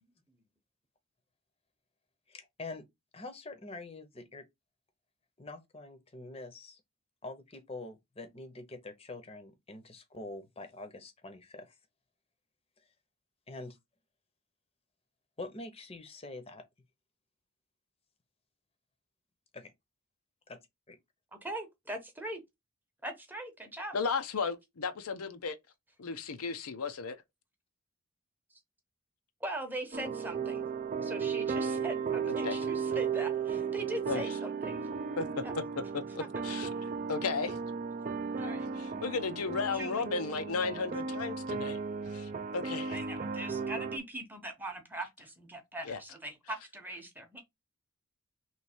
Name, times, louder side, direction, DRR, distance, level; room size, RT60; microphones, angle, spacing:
voice 1, 2.3-2.8 3.1-4.4 5.4-6.8 7.2-11.8 13.5-13.8 15.4-16.6 19.5-19.7 20.5-20.6 20.9-21.0, left 2 dB, 25° left, 0.7 m, -45 dB
voice 2, 21.4-22.4 23.0-24.0 29.4-30.6 31.0-34.8 35.4-35.5 38.4-38.7 39.7-40.1 42.9-47.4, right 1 dB, 10° right, 0.8 m, -41 dB
voice 3, 23.9-25.6 26.0-27.2 32.4-32.6 34.1-34.2 35.2-35.3 35.9-36.7 37.1-37.6 39.0-41.8 42.1-43.0 45.9-46.0, left 4 dB, 90° left, 0.6 m, -34 dB
sound 1, 29.9-44.0, right 5 dB, 35° right, 0.4 m, -35 dB
3.2 x 3.1 x 4.3 m
head